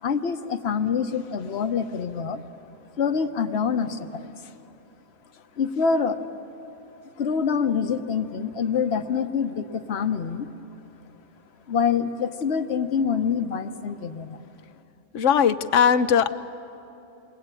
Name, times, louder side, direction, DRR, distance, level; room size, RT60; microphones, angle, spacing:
voice 1, 0.0-2.4 3.0-4.3 5.6-6.2 7.2-10.5 11.7-14.4, left 6 dB, 60° left, 8 dB, 1.3 m, -25 dB
voice 2, 15.1-16.3, left 7 dB, 90° left, 12 dB, 1.2 m, -19 dB
28.5 x 22.0 x 9.0 m, 2.9 s
omnidirectional pair, 1.2 m